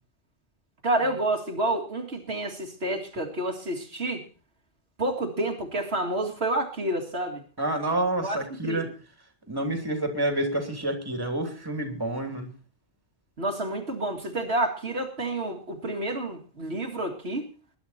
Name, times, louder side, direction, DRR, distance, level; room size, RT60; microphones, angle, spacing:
voice 1, 0.8-4.2 5.0-7.4 8.2-8.4 8.6-8.8 13.4-17.5, right 1 dB, 65° right, 2 dB, 2.4 m, -29 dB
voice 2, 7.6-8.9 9.5-12.5, right 1 dB, 20° right, 5 dB, 2.9 m, -28 dB
20.5 x 11.0 x 4.3 m, 0.35 s
omnidirectional pair, 1.1 m